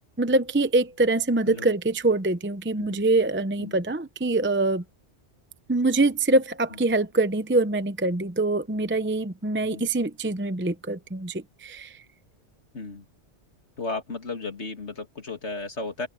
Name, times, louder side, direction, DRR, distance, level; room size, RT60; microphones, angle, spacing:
voice 1, 0.2-4.8 5.7-12.0, right 2 dB, 10° right, 0.7 m, -24 dB
voice 2, 12.7-13.0 13.8-16.1, left 3 dB, 65° left, 2.9 m, -34 dB
open air
omnidirectional pair, 1.2 m